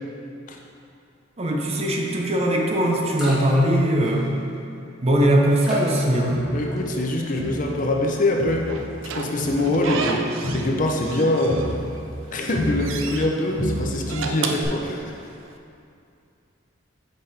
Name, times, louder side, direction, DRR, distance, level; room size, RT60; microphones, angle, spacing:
voice 1, 1.4-4.3 5.0-6.4, right 1 dB, 35° right, -1 dB, 0.6 m, -20 dB
sound 1, 2.5-2.6 2.9-3.7 4.0-4.5 5.6-6.0 6.6-7.0 7.4-7.7, left 1 dB, ahead, 1.3 m, -33 dB
Crowd, 6.3-8.1 8.4-13.3 13.6-14.2 14.6-14.7, equal, 70° left, 1.4 m, -31 dB
voice 2, 6.5-8.7 9.0-10.3 10.5-11.6 12.3-15.0, left 1 dB, 45° left, 1 dB, 0.6 m, -24 dB
Slam / Squeak, 8.7-10.7 11.0-12.0 12.4-13.3 13.9-15.5, right 4 dB, 90° right, 0.5 m, -31 dB
5.7 x 5.1 x 4.1 m, 2.6 s
head